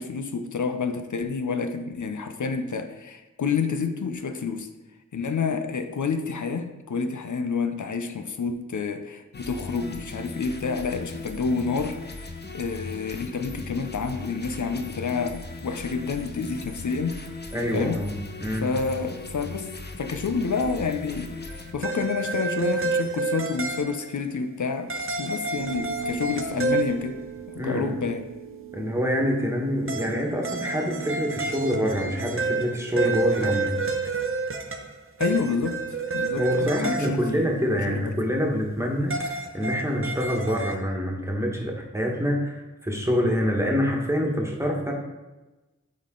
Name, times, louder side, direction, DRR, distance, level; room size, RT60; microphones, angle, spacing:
voice 1, 0.0-4.7 5.1-12.0 12.5-17.2 17.7-18.0 18.6-19.7 20.0-27.2 27.5-28.3 35.2-35.8 36.1-37.6 37.9-38.1, left 5 dB, 70° left, 7 dB, 0.6 m, -29 dB
sound 1, 9.3-21.7, left 2 dB, 35° left, 0.8 m, -38 dB
voice 2, 17.5-18.1 18.4-18.7 27.6-27.9 28.7-33.8 36.3-44.9, equal, 10° right, -1 dB, 1.5 m, -26 dB
sound 2, 21.5-24.2 24.9-27.4 29.9-38.2 38.5-40.8, right 3 dB, 45° right, 0.8 m, -29 dB
sound 3, 25.5-33.5, right 8 dB, 75° right, 0.6 m, -40 dB
8.5 x 3.7 x 3.8 m, 1.1 s
cardioid pair, 40°, 31 cm